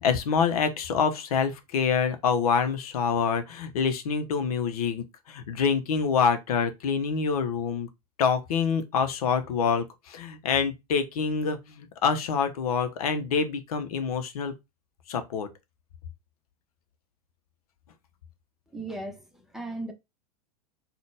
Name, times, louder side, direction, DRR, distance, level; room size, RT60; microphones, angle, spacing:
voice 1, 0.0-7.9 8.2-14.5 15.1-15.5, left 6 dB, 65° left, 0.9 m, -26 dB
voice 2, 18.7-19.9, right 2 dB, ahead, 1.0 m, -37 dB
4.0 x 2.4 x 3.4 m
figure-of-eight pair, 90°, 20 cm